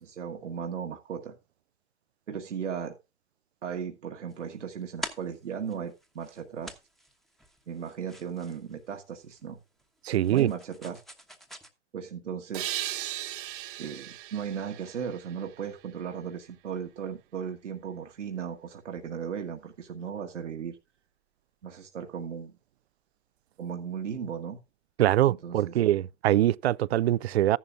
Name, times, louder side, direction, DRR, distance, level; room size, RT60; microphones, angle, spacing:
voice 1, 0.0-1.4 2.3-3.0 3.6-6.8 7.7-9.6 10.3-11.0 11.9-12.7 13.8-20.8 21.6-22.5 23.6-24.6 25.3-25.8, right 7 dB, 80° right, 1.6 m, -36 dB
sound 1, 4.3-11.7, equal, ahead, 1.0 m, -46 dB
voice 2, 10.0-10.5 25.0-27.6, right 13 dB, 60° right, 0.4 m, -23 dB
sound 2, 12.5-16.0, right 14 dB, 45° right, 1.1 m, -37 dB
14.0 x 11.0 x 2.5 m
hypercardioid pair, 130°, 36 cm